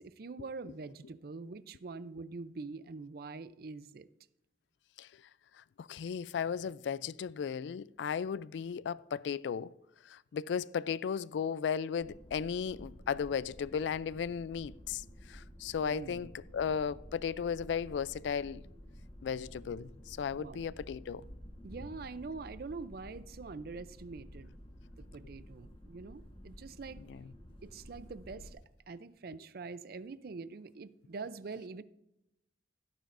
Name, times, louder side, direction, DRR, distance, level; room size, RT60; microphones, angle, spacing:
voice 1, 0.0-4.1 15.9-16.3 20.4-20.7 21.6-24.6 25.1-27.0 27.6-31.8, right 4 dB, 55° right, 0.5 m, -44 dB
voice 2, 5.8-9.7 10.1-15.0 15.3-18.6 19.2-21.2 27.1-27.3, left 7 dB, 80° left, 0.3 m, -35 dB
sound 1, 12.0-28.5, equal, 30° left, 1.3 m, -52 dB
16.0 x 9.2 x 2.6 m
head